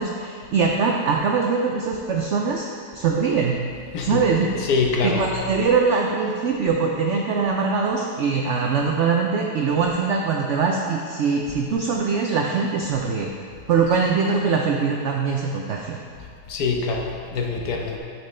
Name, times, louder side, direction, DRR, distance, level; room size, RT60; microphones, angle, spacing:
voice 1, 0.0-2.7 2.9-3.6 4.0-4.6 5.0-13.3 13.7-16.0, right 5 dB, 90° right, 1 dB, 0.6 m, -22 dB
voice 2, 4.6-5.2 16.5-18.0, left 4 dB, 65° left, 1 dB, 1.2 m, -24 dB
9.0 x 6.0 x 3.2 m, 2.2 s
omnidirectional pair, 1.8 m